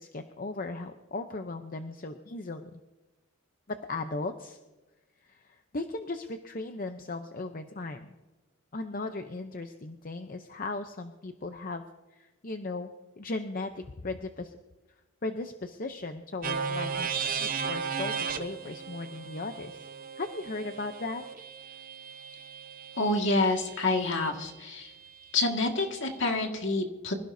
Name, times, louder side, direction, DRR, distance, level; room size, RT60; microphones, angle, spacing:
voice 1, 0.0-2.7 3.7-4.6 5.2-8.1 8.7-11.8 12.1-12.9 13.2-14.5 15.2-19.9 20.2-21.2, left 3 dB, 40° left, 7 dB, 0.7 m, -37 dB
sound 1, 16.4-24.3, right 6 dB, 40° right, 0.8 m, -36 dB
voice 2, 23.0-24.9 25.3-27.1, left 2 dB, 55° left, 3 dB, 1.9 m, -28 dB
25.5 x 15.5 x 2.7 m, 1.1 s
head